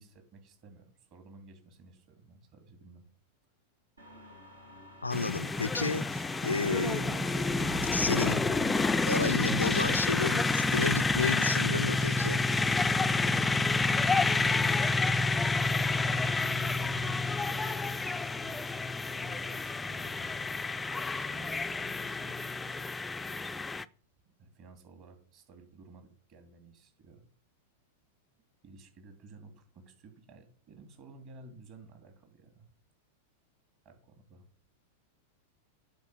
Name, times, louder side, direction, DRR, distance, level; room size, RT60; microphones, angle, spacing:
voice 1, 0.0-3.0 15.2-15.4 15.8-18.6 19.1-20.5 21.0-22.9 24.4-27.2 28.6-32.7 33.8-34.5, right 3 dB, 40° right, 2.7 m, -54 dB
sound 1, 4.0-11.2, left 1 dB, 80° right, 2.4 m, -44 dB
voice 2, 5.0-7.0 7.9-8.4 9.1-12.4, left 3 dB, 80° left, 0.4 m, -31 dB
sound 2, 5.1-23.8, left 3 dB, 10° left, 0.4 m, -29 dB
8.3 x 4.7 x 6.7 m
figure-of-eight pair, 90°, 0 cm